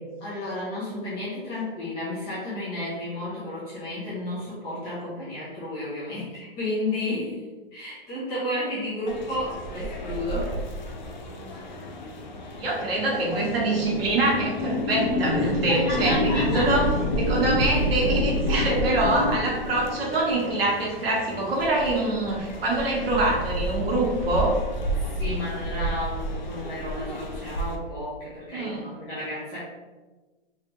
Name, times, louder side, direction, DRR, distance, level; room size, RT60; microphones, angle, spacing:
voice 1, 0.2-7.4 7.7-10.6 15.7-16.8 25.2-29.6, left 1 dB, 15° left, -9 dB, 0.8 m, -32 dB
sound 1, 9.1-27.8, right 1 dB, 50° left, 0.6 m, -32 dB
sound 2, 11.5-20.3, left 2 dB, 70° left, 1.1 m, -28 dB
voice 2, 12.6-16.9 17.2-24.6 28.5-28.8, right 2 dB, 70° right, -3 dB, 1.4 m, -25 dB
3.4 x 3.2 x 3.0 m, 1.2 s
hypercardioid pair, 175°, 30 cm